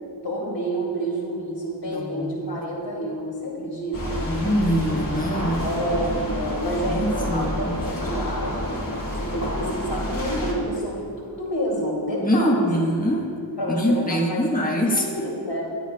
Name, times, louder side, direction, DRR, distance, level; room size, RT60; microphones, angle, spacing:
voice 1, 0.2-4.2 5.6-8.7 9.2-12.7 13.6-14.4 14.7-15.6, right 1 dB, 75° left, -4 dB, 2.8 m, -29 dB
voice 2, 1.9-2.6 4.3-5.6 6.9-7.8 12.2-13.3 13.7-15.0, equal, 20° left, -3 dB, 1.4 m, -24 dB
sound 1, 3.9-10.5, equal, 45° left, 2.4 m, -29 dB
22.0 x 7.7 x 2.4 m, 2.4 s
wide cardioid pair, 75°, 44 cm